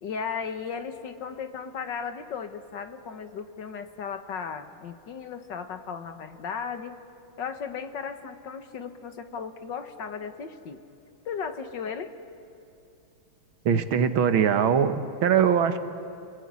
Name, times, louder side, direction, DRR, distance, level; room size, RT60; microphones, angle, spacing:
voice 1, 0.0-7.0 7.4-10.8 11.3-12.1, left 6 dB, 60° left, 9 dB, 1.9 m, -36 dB
voice 2, 13.7-15.8, right 7 dB, 75° right, 10 dB, 2.0 m, -22 dB
28.0 x 20.0 x 9.6 m, 2.6 s
omnidirectional pair, 2.2 m